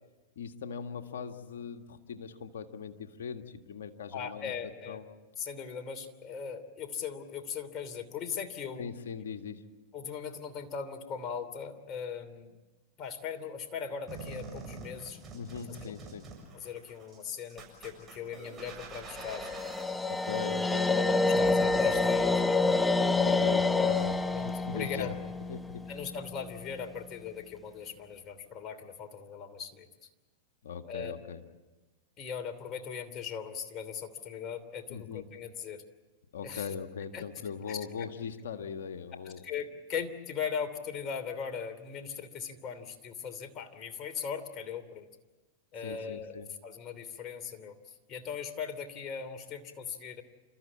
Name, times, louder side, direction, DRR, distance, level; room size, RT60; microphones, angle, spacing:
voice 1, 0.4-4.5 4.9-5.1 8.8-9.7 15.3-16.3 20.1-20.9 23.1-25.2 25.5-25.8 30.6-31.4 34.9-35.2 36.3-39.4 45.8-46.5, left 6 dB, 75° left, 5 dB, 1.8 m, -40 dB
voice 2, 4.1-5.0 5.4-8.9 9.9-12.6 13.0-15.2 15.8-15.9 16.5-19.5 21.2-22.7 24.3-25.1 25.9-30.1 30.8-31.1 32.2-35.8 36.4-36.7 37.1-37.2 37.6-37.8 39.2-45.1 45.7-46.3 46.6-50.2, left 7 dB, 35° left, 6 dB, 3.0 m, -39 dB
sound 1, 14.1-22.1, right 4 dB, 25° right, 7.2 m, -46 dB
sound 2, 19.1-26.3, left 3 dB, 10° left, 0.8 m, -27 dB
30.0 x 14.0 x 8.7 m, 1.2 s
hypercardioid pair, 105°, 0 cm